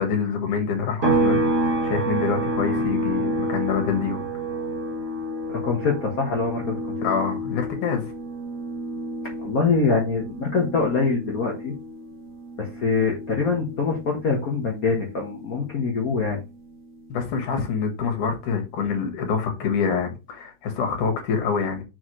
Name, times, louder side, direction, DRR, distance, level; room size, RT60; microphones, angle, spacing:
voice 1, 0.0-1.4 1.8-4.3 7.0-8.1 17.1-21.8, left 6 dB, 70° left, 3.1 m, -26 dB
sound 1, 1.0-14.6 14.9-17.1, right 1 dB, 40° right, 1.2 m, -29 dB
voice 2, 5.5-6.8 9.4-11.7 12.6-16.4, left 4 dB, 45° left, 1.1 m, -24 dB
6.3 x 5.9 x 3.2 m
omnidirectional pair, 3.7 m